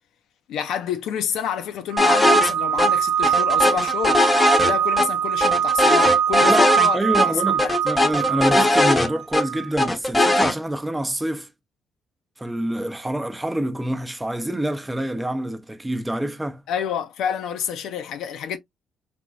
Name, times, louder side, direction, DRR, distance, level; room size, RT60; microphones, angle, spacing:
voice 1, 0.5-4.2 4.6-7.0 7.3-7.7 16.7-18.6, left 8 dB, 80° left, 0.6 m, -28 dB
sound 1, 1.9-9.7, right 9 dB, 90° right, 0.4 m, -22 dB
sound 2, 2.0-2.5 2.8-2.9 3.2-5.1 5.4-6.9 7.1-7.3 7.6-9.4 9.8-10.5, left 2 dB, 15° left, 0.8 m, -19 dB
voice 2, 6.9-11.5 12.4-16.6, right 1 dB, 10° right, 0.6 m, -26 dB
3.4 x 2.9 x 2.5 m
cardioid pair, 90°, 0 cm